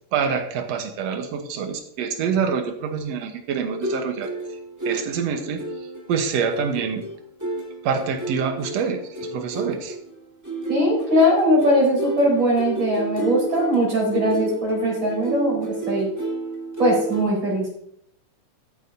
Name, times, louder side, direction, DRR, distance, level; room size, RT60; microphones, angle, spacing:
voice 1, 0.1-4.6 4.9-7.0 7.8-10.0, right 6 dB, 65° right, 6 dB, 2.0 m, -26 dB
sound 1, 3.7-17.2, right 2 dB, 10° right, 1.0 m, -31 dB
voice 2, 10.7-16.1 16.8-17.8, equal, 40° right, -5 dB, 4.8 m, -20 dB
14.0 x 8.1 x 2.7 m, 0.72 s
omnidirectional pair, 3.4 m